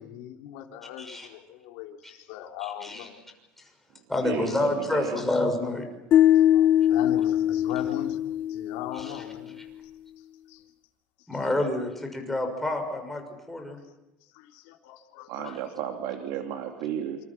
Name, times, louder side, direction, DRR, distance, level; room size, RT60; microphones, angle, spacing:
voice 1, 0.0-3.2 6.3-9.6 10.5-10.6 14.2-15.6, left 11 dB, 70° left, 3 dB, 3.5 m, -39 dB
voice 2, 1.0-1.3 2.6-3.1 4.1-5.9 9.0-9.1 11.3-13.2 13.5-13.8, left 2 dB, 5° left, 3 dB, 6.2 m, -28 dB
voice 3, 4.2-5.2 15.3-17.2, right 9 dB, 60° right, 3 dB, 3.0 m, -33 dB
sound 1, 6.1-9.3, left 11 dB, 40° left, 1.0 m, -22 dB
28.0 x 28.0 x 6.1 m, 0.90 s
cardioid pair, 155°, 5 cm